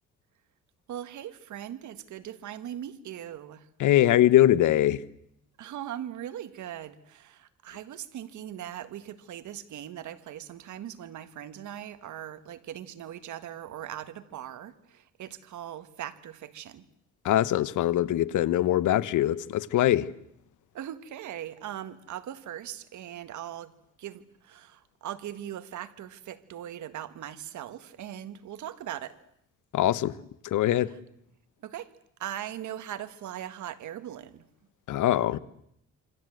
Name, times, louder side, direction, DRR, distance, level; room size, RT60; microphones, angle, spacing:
voice 1, 0.9-3.7 5.6-16.9 20.7-23.7 24.0-29.2 31.6-34.5, right 11 dB, 75° right, 1.8 m, -40 dB
voice 2, 3.8-5.0 17.2-20.1 29.7-30.2 30.4-30.9 34.9-35.4, left 13 dB, 80° left, 1.2 m, -22 dB
27.0 x 26.0 x 7.9 m
cardioid pair, 90°, 30 cm